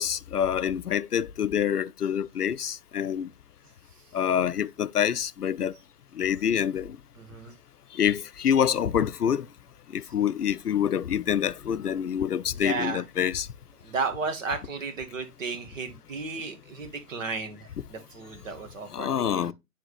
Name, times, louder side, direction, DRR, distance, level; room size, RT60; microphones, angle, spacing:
voice 1, 0.0-3.3 4.1-5.7 6.2-7.0 7.9-9.5 9.9-13.5 18.9-19.5, left 9 dB, 90° left, 0.5 m, -26 dB
voice 2, 7.2-7.6 10.0-10.1 12.5-13.0 13.8-19.5, right 4 dB, 60° right, 1.7 m, -34 dB
9.4 x 3.5 x 3.2 m
figure-of-eight pair, 120°, 45 cm